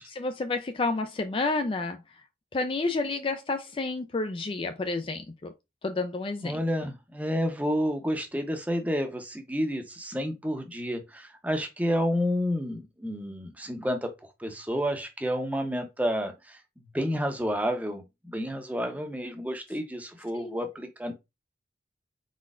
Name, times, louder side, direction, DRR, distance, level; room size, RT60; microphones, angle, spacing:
voice 1, 0.2-2.0 2.5-5.5 5.8-6.6 20.3-20.5, left 3 dB, 30° left, 0.3 m, -30 dB
voice 2, 6.4-14.1 14.4-16.6 16.9-21.1, equal, 10° right, 0.7 m, -30 dB
4.2 x 4.1 x 2.4 m
head